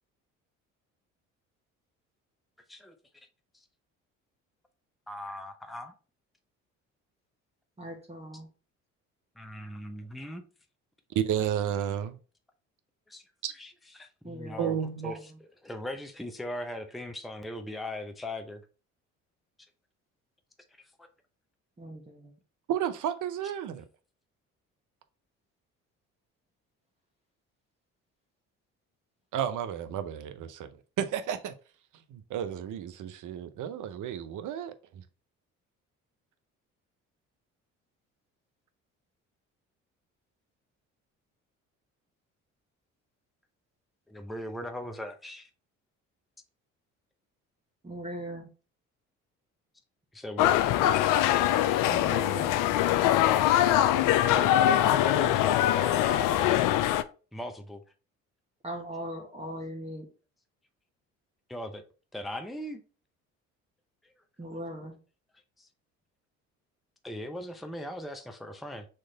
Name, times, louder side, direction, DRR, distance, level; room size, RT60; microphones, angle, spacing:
voice 1, 5.1-5.9 9.4-10.4 13.1-13.3 13.5-14.8 15.0-18.6 20.8-21.1 44.1-45.5 50.1-50.6 54.3-56.7 57.3-57.8 61.5-61.8 62.1-62.8 65.6-65.7 67.0-68.9, left 1 dB, ahead, 0.7 m, -39 dB
voice 2, 7.8-8.5 14.2-14.9 21.8-22.3 47.8-48.5 51.9-52.6 58.6-60.1 64.4-65.0, right 1 dB, 15° right, 1.4 m, -39 dB
voice 3, 11.1-12.2 13.4-13.5 14.6-15.2 22.7-23.8 29.3-30.7 31.0-31.5 32.1-35.0, right 9 dB, 60° right, 0.7 m, -32 dB
sound 1, 50.4-57.0, left 12 dB, 65° left, 0.5 m, -23 dB
4.4 x 3.1 x 3.8 m
hypercardioid pair, 60°, 35 cm